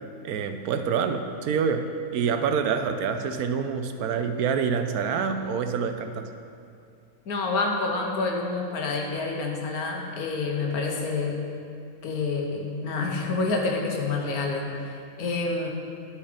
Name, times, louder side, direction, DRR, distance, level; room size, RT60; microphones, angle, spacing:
voice 1, 0.2-6.3, right 6 dB, 90° right, 8 dB, 1.1 m, -27 dB
voice 2, 7.3-11.4 12.0-15.7, left 3 dB, 90° left, 1 dB, 1.6 m, -28 dB
12.0 x 4.9 x 5.0 m, 2.4 s
omnidirectional pair, 1.5 m